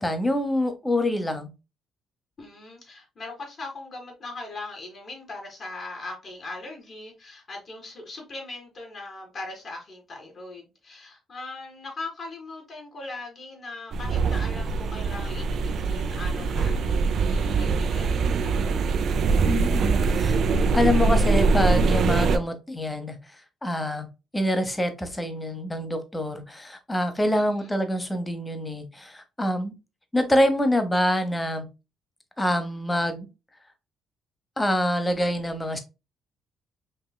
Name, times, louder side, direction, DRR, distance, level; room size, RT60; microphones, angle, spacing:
voice 1, 0.0-1.5 19.4-20.4 20.7-23.2 23.6-24.1 24.3-29.7 30.1-31.7 32.4-33.3 34.6-35.8, left 1 dB, 10° left, 0.9 m, -26 dB
voice 2, 2.4-18.6 27.3-27.7, left 2 dB, 45° left, 2.2 m, -40 dB
sound 1, 13.9-22.4, right 4 dB, 60° right, 0.5 m, -23 dB
5.3 x 2.9 x 2.2 m
cardioid pair, 95°, 0 cm